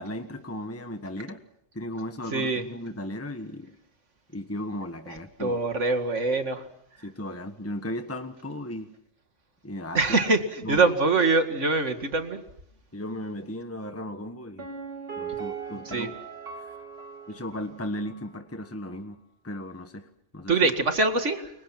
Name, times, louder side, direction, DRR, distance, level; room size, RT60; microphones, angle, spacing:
voice 1, 0.0-1.4 1.7-3.7 4.3-5.6 7.0-8.9 9.6-10.0 10.6-10.9 12.9-14.7 15.2-16.1 16.6-16.8 17.3-20.1 20.3-20.6, left 1 dB, 10° left, 6 dB, 1.4 m, -36 dB
voice 2, 2.3-2.6 5.4-6.6 9.9-12.4 15.9-16.1 20.5-21.5, right 3 dB, 75° right, 7 dB, 2.5 m, -24 dB
Piano, 14.6-18.3 18.6-18.7, right 6 dB, 55° right, 3.0 m, -39 dB
29.0 x 24.0 x 6.0 m, 0.73 s
omnidirectional pair, 1.2 m